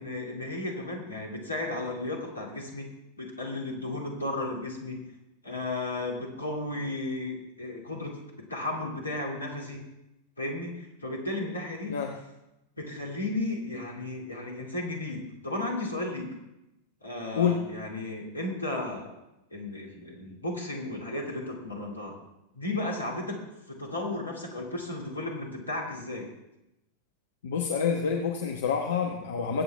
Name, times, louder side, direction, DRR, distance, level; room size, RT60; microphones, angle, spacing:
voice 1, 0.0-2.9 3.2-5.0 5.4-8.2 8.5-9.8 10.4-11.9 12.8-16.3 17.0-19.1 19.5-22.2 22.5-23.4 23.7-26.3, left 2 dB, 80° left, -1 dB, 2.5 m, -34 dB
voice 2, 27.4-29.6, left 6 dB, 60° left, 2 dB, 1.1 m, -27 dB
21.5 x 8.1 x 3.4 m, 0.91 s
figure-of-eight pair, 90°, 0 cm